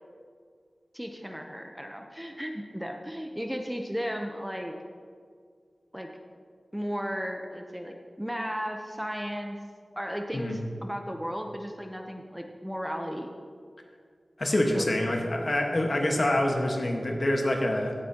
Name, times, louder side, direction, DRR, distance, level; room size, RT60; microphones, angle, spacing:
voice 1, 0.9-4.7 5.9-6.1 6.7-9.6 10.0-13.3 14.7-14.9, equal, 5° right, 3 dB, 0.7 m, -35 dB
voice 2, 14.4-17.9, left 1 dB, 50° left, 1 dB, 1.4 m, -26 dB
16.5 x 8.2 x 2.9 m, 2.1 s
wide cardioid pair, 70°, 0 cm